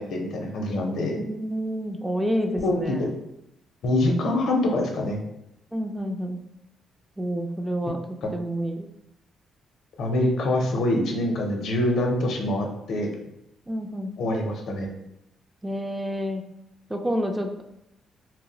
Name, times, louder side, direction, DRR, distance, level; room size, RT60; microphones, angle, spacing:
voice 1, 0.0-1.2 2.6-3.1 3.8-5.2 10.0-13.1 14.2-14.9, left 1 dB, 70° left, 2 dB, 0.5 m, -25 dB
voice 2, 1.1-3.1 5.7-6.4 7.2-8.9 13.7-14.1 15.6-16.4 16.9-17.6, equal, 10° right, 4 dB, 0.3 m, -29 dB
2.2 x 2.0 x 3.7 m, 0.85 s
cardioid pair, 90°, 0 cm